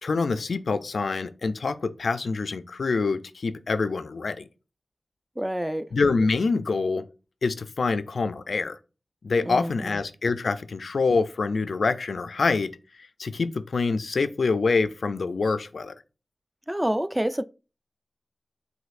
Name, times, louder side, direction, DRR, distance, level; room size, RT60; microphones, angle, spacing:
voice 1, 0.0-4.5 5.9-7.0 7.4-8.8 9.2-15.9, left 4 dB, 85° left, 0.3 m, -26 dB
voice 2, 5.4-5.9 9.4-10.0 16.7-17.4, right 1 dB, 15° right, 0.3 m, -28 dB
6.3 x 2.6 x 2.4 m
cardioid pair, 45°, 0 cm